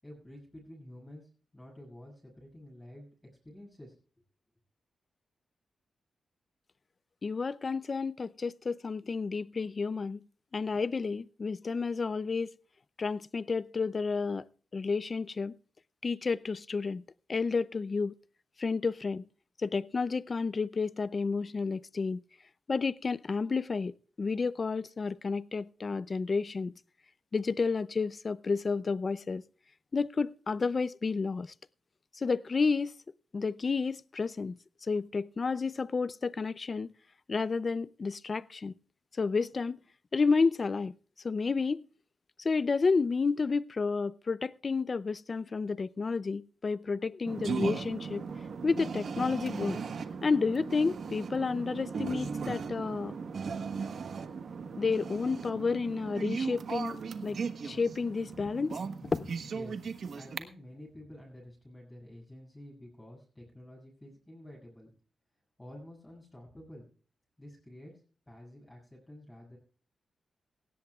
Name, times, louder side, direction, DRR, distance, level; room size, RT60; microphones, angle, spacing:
voice 1, 0.0-3.1 3.4-3.9 59.5-59.8 60.1-64.9 65.6-66.9 67.4-67.9 68.3-69.6, left 1 dB, 15° left, 7.1 m, -50 dB
voice 2, 7.2-10.2 10.5-12.5 13.0-14.5 14.7-15.6 16.0-17.0 17.3-18.1 18.6-19.2 19.6-22.2 22.7-26.7 27.3-29.4 29.9-31.5 32.1-32.9 33.3-36.9 37.3-38.7 39.2-39.8 40.1-40.9 41.2-41.8 42.4-48.2 48.6-49.8 50.2-53.1 54.8-59.3, left 4 dB, 40° left, 0.5 m, -31 dB
sound 1, 47.3-60.4, right 5 dB, 65° right, 1.3 m, -37 dB
18.0 x 16.5 x 2.4 m
cardioid pair, 85°, 0 cm